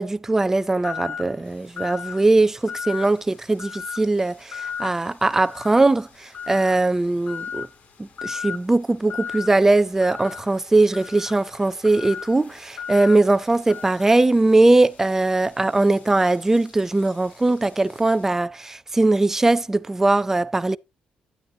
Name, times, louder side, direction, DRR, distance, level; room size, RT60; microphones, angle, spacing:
voice 1, 0.0-7.7 8.0-20.8, right 2 dB, 15° right, 0.4 m, -20 dB
sound 1, 0.8-1.3 1.8-2.2 2.7-3.2 3.6-4.0 4.5-4.9 5.4-5.9 6.3-6.8 7.3-7.7 8.2-8.6 9.1-9.5 10.0-14.2, left 7 dB, 60° left, 0.6 m, -35 dB
sound 2, 1.4-18.3, left 5 dB, 80° left, 3.3 m, -56 dB
9.4 x 8.9 x 2.7 m
cardioid pair, 85°, 3 cm